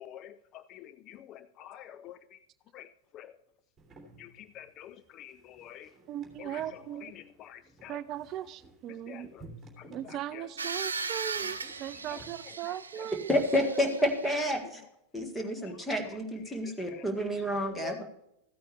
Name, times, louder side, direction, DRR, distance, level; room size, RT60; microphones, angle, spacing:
voice 1, 0.0-2.4 2.7-3.4 4.2-5.9 6.4-8.3 8.9-10.5 11.0-11.2 11.9-13.1 15.6-15.7 16.1-18.0, left 11 dB, 35° left, 0.4 m, -49 dB
sound 1, 3.8-12.3, right 2 dB, 15° right, 2.7 m, -55 dB
voice 2, 6.1-7.1 7.9-9.3 9.9-13.3, right 12 dB, 35° right, 0.3 m, -38 dB
sound 2, 10.6-14.4, right 4 dB, 75° right, 0.6 m, -38 dB
voice 3, 13.3-14.8 15.1-18.0, equal, 5° left, 1.7 m, -29 dB
14.5 x 8.8 x 3.3 m
figure-of-eight pair, 90°, 0 cm